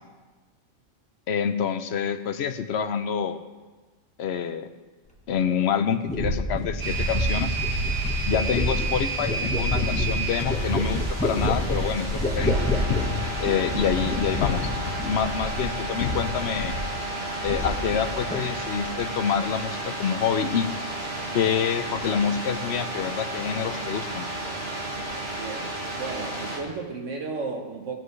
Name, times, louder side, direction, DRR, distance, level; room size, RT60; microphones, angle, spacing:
voice 1, 1.3-3.4 4.2-4.7 5.3-7.6 8.3-12.6 13.4-14.7 15.0-16.8 17.4-20.7 21.3-24.3, left 7 dB, 65° left, 10 dB, 0.9 m, -27 dB
sound 1, 6.1-15.8 16.0-16.9 17.2-18.1 18.3-18.8, equal, 5° left, 1.3 m, -28 dB
sound 2, 6.8-26.6, right 2 dB, 55° right, 2.1 m, -32 dB
sound 3, 9.8-19.1, left 8 dB, 85° left, 1.1 m, -35 dB
voice 2, 25.4-28.0, right 4 dB, 75° right, 1 dB, 1.4 m, -34 dB
17.5 x 7.7 x 3.3 m, 1.3 s
omnidirectional pair, 1.3 m